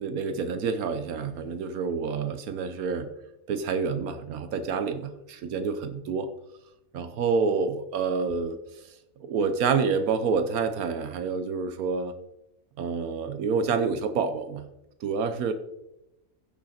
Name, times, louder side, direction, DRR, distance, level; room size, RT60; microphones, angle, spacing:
voice 1, 0.0-3.1 3.5-6.3 6.9-8.6 8.8-12.1 12.8-14.6 15.0-15.5, right 5 dB, 80° right, 10 dB, 1.3 m, -28 dB
15.5 x 6.3 x 4.3 m, 0.88 s
omnidirectional pair, 1.5 m